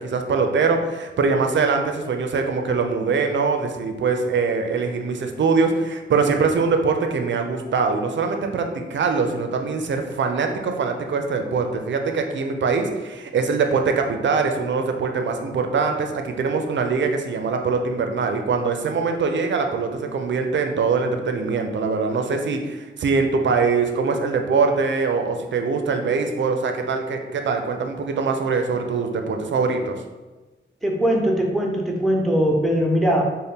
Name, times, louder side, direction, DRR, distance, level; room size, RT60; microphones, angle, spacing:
voice 1, 0.0-30.0, right 4 dB, 70° right, 5 dB, 0.5 m, -23 dB
voice 2, 30.8-33.2, equal, ahead, 0 dB, 0.6 m, -20 dB
4.0 x 2.1 x 3.5 m, 1.2 s
wide cardioid pair, 100°, 20 cm